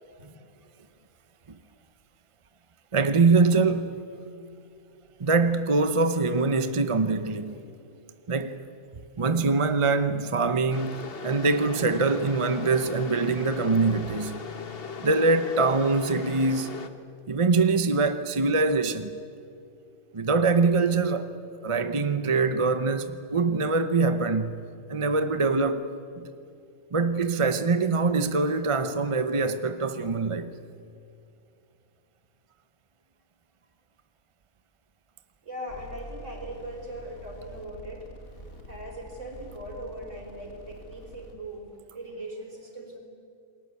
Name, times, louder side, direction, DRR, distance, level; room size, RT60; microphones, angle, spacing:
voice 1, 2.9-4.0 5.2-7.6 8.3-8.7 9.2-14.4 15.0-16.8 17.3-19.2 20.1-21.3 21.6-25.9 26.2-26.3 26.9-30.5, right 3 dB, 30° right, 0.7 m, -24 dB
sound 1, 10.7-16.9, left 5 dB, 45° left, 1.3 m, -38 dB
voice 2, 35.4-38.1 38.6-43.0, right 1 dB, 55° right, 5.1 m, -40 dB
sound 2, 35.7-41.3, left 1 dB, 65° left, 3.2 m, -46 dB
29.0 x 21.0 x 8.3 m
omnidirectional pair, 1.5 m